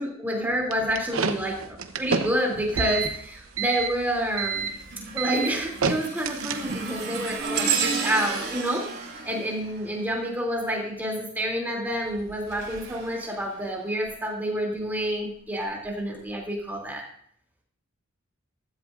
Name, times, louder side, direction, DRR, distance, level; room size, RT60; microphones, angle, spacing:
voice 1, 0.0-4.7 5.1-8.8 9.2-17.0, equal, 10° right, -1 dB, 2.8 m, -28 dB
sound 1, 0.7-7.0, right 5 dB, 80° right, 0.9 m, -29 dB
sound 2, 3.0-3.4 3.9-10.7 11.9-14.1 14.8-15.0 15.9-16.0, right 5 dB, 50° right, 3.1 m, -33 dB
15.0 x 14.5 x 2.5 m, 0.62 s
head